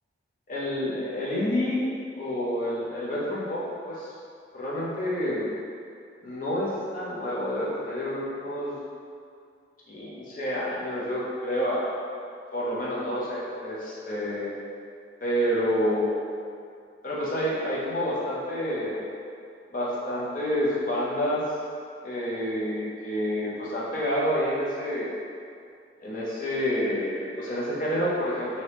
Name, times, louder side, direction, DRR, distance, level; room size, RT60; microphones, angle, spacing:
voice 1, 0.5-1.9 2.2-4.1 4.5-5.5 6.2-8.8 9.9-12.1 12.5-14.6 15.2-16.2 17.0-19.1 19.7-21.4 22.0-25.2 26.0-28.6, equal, 45° left, -7 dB, 0.6 m, -28 dB
2.9 x 2.7 x 3.3 m, 2.4 s
head